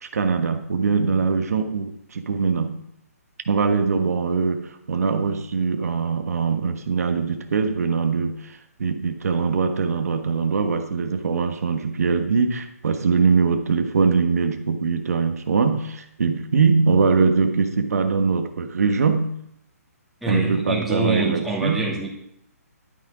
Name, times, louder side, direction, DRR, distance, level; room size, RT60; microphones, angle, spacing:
voice 1, 0.0-2.8 3.5-19.3 20.3-21.9, right 5 dB, 70° right, 6 dB, 1.3 m, -22 dB
voice 2, 20.2-22.1, right 3 dB, ahead, -5 dB, 2.5 m, -26 dB
12.0 x 8.7 x 4.9 m, 0.77 s
hypercardioid pair, 155°, 9 cm